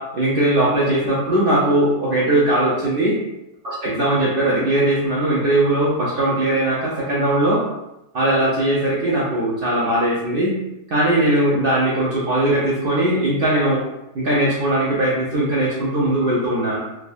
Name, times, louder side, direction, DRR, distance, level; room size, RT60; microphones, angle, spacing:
voice 1, 0.0-3.1 3.6-7.6 8.1-10.5 10.9-13.8 14.1-16.8, right 1 dB, 60° right, -7 dB, 0.6 m, -19 dB
3.2 x 2.1 x 2.5 m, 0.90 s
omnidirectional pair, 1.5 m